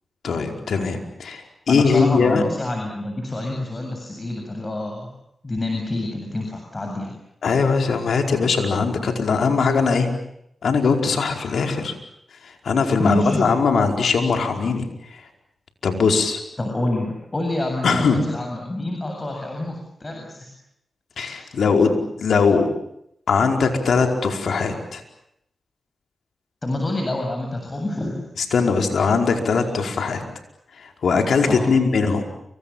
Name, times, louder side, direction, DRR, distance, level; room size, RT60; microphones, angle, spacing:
voice 1, 0.2-1.4 1.7-2.4 7.4-10.1 10.6-11.9 12.6-14.9 15.8-16.4 17.8-18.2 21.2-22.7 23.3-25.0 28.4-30.2 31.0-32.2, left 5 dB, 80° left, 4 dB, 4.9 m, -20 dB
voice 2, 1.7-5.1 5.4-7.1 13.0-13.5 16.6-20.5 21.2-21.5 26.6-28.2 31.5-31.7, left 1 dB, 35° left, 2 dB, 8.0 m, -27 dB
29.5 x 26.5 x 7.3 m, 0.76 s
cardioid pair, 50°, 0 cm